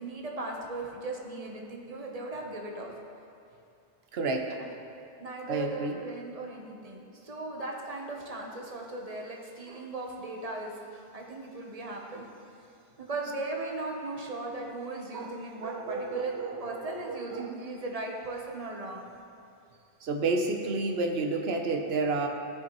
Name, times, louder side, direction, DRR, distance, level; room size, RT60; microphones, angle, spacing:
voice 1, 0.0-2.9 4.6-4.7 5.2-10.8 11.1-12.2 13.0-16.3 16.6-19.0, right 2 dB, 40° right, 0 dB, 1.0 m, -37 dB
voice 2, 4.1-4.6 5.5-6.0 9.7-9.9 15.1-17.6 20.0-22.3, right 3 dB, 75° right, 3 dB, 1.0 m, -31 dB
14.5 x 5.2 x 3.0 m, 2.6 s
omnidirectional pair, 1.1 m